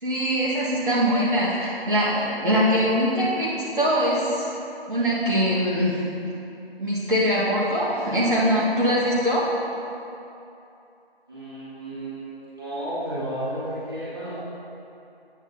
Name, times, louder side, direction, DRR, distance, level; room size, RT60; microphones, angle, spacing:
voice 1, 0.0-4.5 4.9-6.0 6.8-9.5, equal, 55° right, -8 dB, 1.5 m, -22 dB
voice 2, 11.3-14.3, right 1 dB, 25° right, -13 dB, 1.9 m, -32 dB
9.0 x 8.3 x 2.7 m, 2.8 s
figure-of-eight pair, 180°, 31 cm